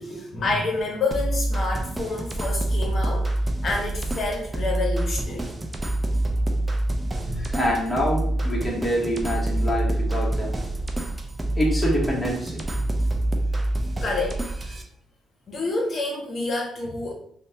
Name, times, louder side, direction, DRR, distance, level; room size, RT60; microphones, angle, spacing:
voice 1, 0.0-3.3 3.6-5.6 14.0-14.8 15.5-17.1, left 3 dB, 50° left, -1 dB, 0.7 m, -28 dB
sound 1, 1.1-14.8, right 1 dB, 20° right, 0.4 m, -26 dB
voice 2, 7.2-10.6 11.5-12.6, equal, 5° left, -3 dB, 0.9 m, -26 dB
3.0 x 2.1 x 2.7 m, 0.65 s
cardioid pair, 90°, 0 cm